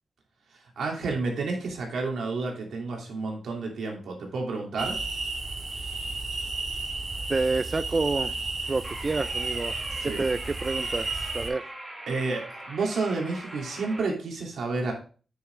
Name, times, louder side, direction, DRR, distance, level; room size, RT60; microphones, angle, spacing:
voice 1, 0.8-5.0 9.9-10.2 12.1-14.9, right 3 dB, 80° right, 0 dB, 3.0 m, -30 dB
sound 1, 4.8-11.5, right 3 dB, 45° right, 3.0 m, -33 dB
voice 2, 7.3-8.4 8.7-9.7 10.0-11.6, right 3 dB, 30° right, 13 dB, 0.3 m, -28 dB
sound 2, 8.8-14.1, right 1 dB, 5° right, 4.1 m, -42 dB
9.4 x 6.5 x 3.6 m, 0.39 s
wide cardioid pair, 115°, 0 cm